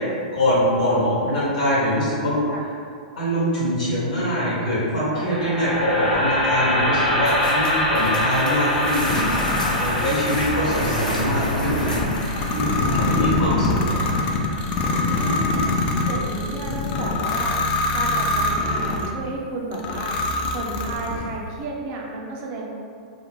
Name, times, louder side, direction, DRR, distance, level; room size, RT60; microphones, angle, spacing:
voice 1, 0.3-2.4 3.2-9.2 9.8-11.9 12.5-14.0, equal, 70° left, -9 dB, 1.3 m, -23 dB
sound 1, 5.1-15.3, left 1 dB, 5° left, 0.7 m, -25 dB
sound 2, 7.2-12.8, equal, 85° left, 0.6 m, -31 dB
sound 3, 8.8-19.1 19.7-21.4, left 2 dB, 35° left, 0.3 m, -24 dB
voice 2, 11.7-12.0 12.8-13.1 14.9-15.6 16.1-17.6 17.9-22.7, right 2 dB, 40° right, -1 dB, 0.4 m, -33 dB
2.5 x 2.1 x 2.9 m, 2.3 s
figure-of-eight pair, 105°, 4 cm